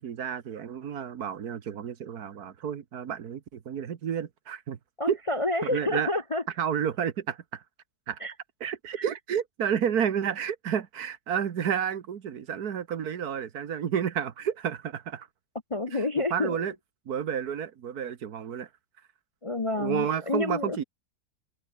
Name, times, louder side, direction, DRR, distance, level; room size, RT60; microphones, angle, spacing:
voice 1, 0.0-4.8 5.1-5.2 5.6-6.1 6.6-7.6 8.1-8.2 8.6-15.3 15.9-16.0 16.3-16.7 17.1-18.7 19.7-20.8, right 8 dB, 65° right, 1.8 m, -31 dB
voice 2, 5.0-6.4 8.2-8.3 9.0-9.1 15.7-16.7 19.4-20.8, left 2 dB, 30° left, 0.6 m, -29 dB
omnidirectional pair, 1.8 m